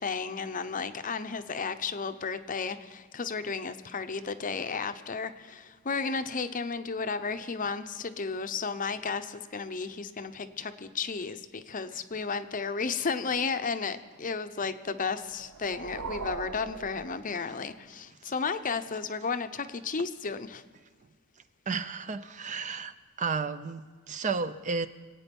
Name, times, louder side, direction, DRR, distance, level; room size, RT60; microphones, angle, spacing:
voice 1, 0.0-20.6, left 5 dB, 35° left, 10 dB, 0.7 m, -33 dB
sound 1, 15.2-17.8, right 4 dB, 80° right, 0.7 m, -41 dB
voice 2, 21.7-24.9, right 4 dB, 35° right, 11 dB, 0.5 m, -33 dB
25.0 x 9.0 x 5.3 m, 1.5 s
head